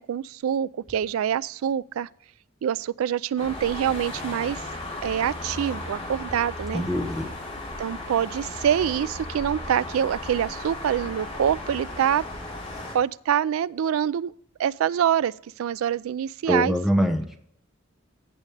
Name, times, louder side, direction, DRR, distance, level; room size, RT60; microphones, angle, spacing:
voice 1, 0.0-2.1 2.6-4.6 5.0-6.8 7.8-12.2 12.9-14.3 14.6-16.7, right 9 dB, 80° right, 0.3 m, -25 dB
Motorway-Traffic-Jet-Airliner-Flyover, 3.4-12.9, left 2 dB, 30° left, 2.8 m, -36 dB
voice 2, 6.7-7.3 16.5-17.4, equal, ahead, 0.9 m, -24 dB
15.5 x 5.2 x 3.3 m
head